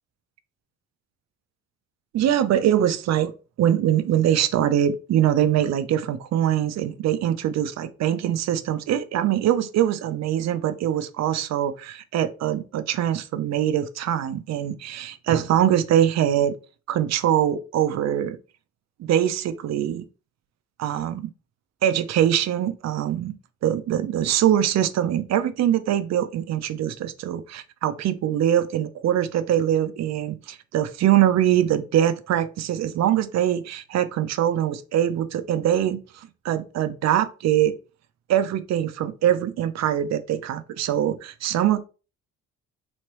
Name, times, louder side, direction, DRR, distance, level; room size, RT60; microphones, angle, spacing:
voice 1, 2.1-3.3 3.6-16.6 16.9-18.4 19.0-20.0 20.8-21.3 21.8-23.3 23.6-36.0 36.4-37.7 38.3-41.8, right 11 dB, 60° right, 0.5 m, -23 dB
3.5 x 3.1 x 3.0 m
cardioid pair, 90°, 30 cm